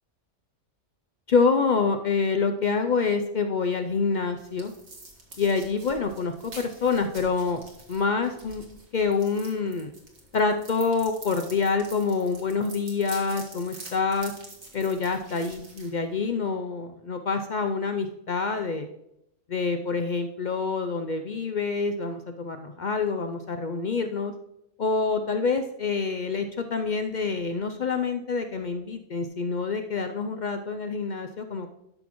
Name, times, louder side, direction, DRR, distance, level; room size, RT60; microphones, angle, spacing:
voice 1, 1.3-4.7 5.4-7.6 7.9-8.6 8.9-9.9 10.3-14.3 14.7-18.9 19.5-24.3 24.8-31.7, left 4 dB, 55° left, 6 dB, 0.5 m, -26 dB
sound 1, 3.9-16.5, right 2 dB, 65° right, 2.0 m, -47 dB
12.5 x 6.2 x 3.0 m, 0.81 s
omnidirectional pair, 1.3 m